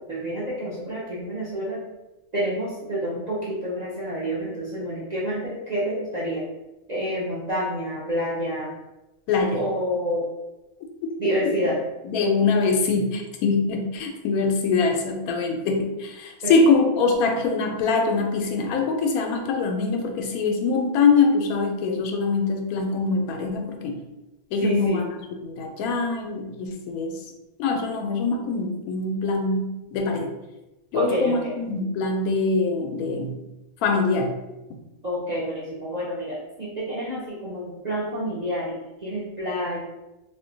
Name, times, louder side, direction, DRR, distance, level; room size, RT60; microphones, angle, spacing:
voice 1, 0.1-1.8 2.3-6.4 6.9-8.7 9.5-10.3 11.2-11.8 16.4-16.5 24.6-25.0 30.9-31.5 35.0-39.8, equal, 55° right, -8 dB, 0.4 m, -28 dB
voice 2, 9.3-9.6 12.0-24.0 24.5-25.1 25.4-27.2 27.6-30.3 30.9-33.4 33.8-34.4 34.7-34.8, left 4 dB, 90° left, 3 dB, 1.1 m, -23 dB
2.6 x 2.2 x 3.8 m, 1.0 s
omnidirectional pair, 1.5 m